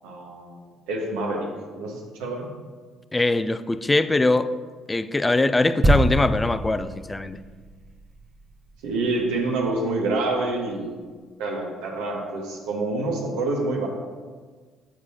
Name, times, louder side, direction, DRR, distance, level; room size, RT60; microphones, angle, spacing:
voice 1, 0.0-0.5 0.9-1.5 1.7-2.5 8.8-10.9 11.4-13.9, right 2 dB, 70° right, 0 dB, 1.0 m, -27 dB
voice 2, 3.1-4.5 4.9-7.4, left 2 dB, 20° left, 13 dB, 0.3 m, -22 dB
sound 1, 5.8-9.5 9.7-9.9, right 1 dB, 35° right, 0.9 m, -26 dB
8.6 x 4.7 x 2.8 m, 1.5 s
hypercardioid pair, 50°, 0 cm